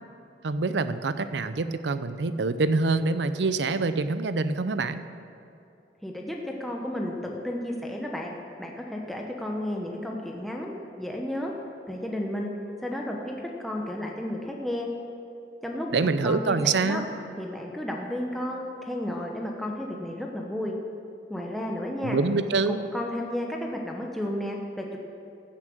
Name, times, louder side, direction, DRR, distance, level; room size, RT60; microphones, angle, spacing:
voice 1, 0.4-5.0 15.9-17.1 22.0-22.8, right 3 dB, 80° right, 12 dB, 0.6 m, -25 dB
voice 2, 6.0-11.5 11.9-12.5 12.8-14.9 15.6-15.9 16.2-17.0 17.4-20.7 21.3-22.2 22.7-25.0, left 1 dB, ahead, -1 dB, 0.9 m, -32 dB
15.5 x 7.3 x 6.4 m, 2.6 s
head